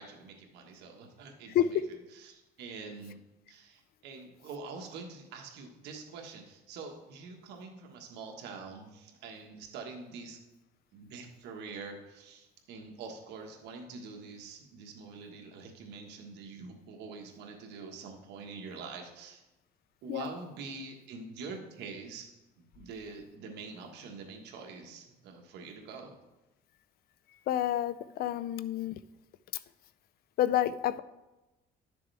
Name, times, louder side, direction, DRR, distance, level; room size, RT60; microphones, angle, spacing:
voice 1, 0.0-1.8 2.1-3.2 3.5-10.4 10.9-19.4 20.0-22.3 22.7-26.1, right 4 dB, 85° right, 3 dB, 1.5 m, -45 dB
voice 2, 1.5-1.9 20.1-20.3 27.5-29.0 30.4-31.0, left 11 dB, 65° left, 15 dB, 0.5 m, -29 dB
11.5 x 6.9 x 3.4 m, 1.0 s
cardioid pair, 110°, 17 cm